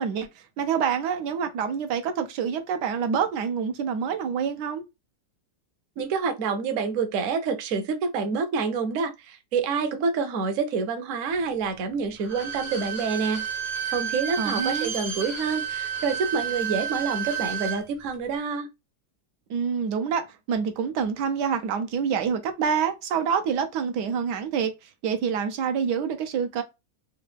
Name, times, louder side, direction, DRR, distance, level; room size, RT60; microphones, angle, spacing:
voice 1, 0.0-4.8 14.4-14.9 19.5-26.6, right 7 dB, 85° right, 1.2 m, -27 dB
voice 2, 6.0-13.5 13.9-18.7, right 5 dB, 60° right, 0.9 m, -27 dB
Bowed string instrument, 12.2-17.8 18.1-18.2, right 8 dB, 40° right, 0.5 m, -31 dB
3.7 x 2.2 x 3.3 m
omnidirectional pair, 1.8 m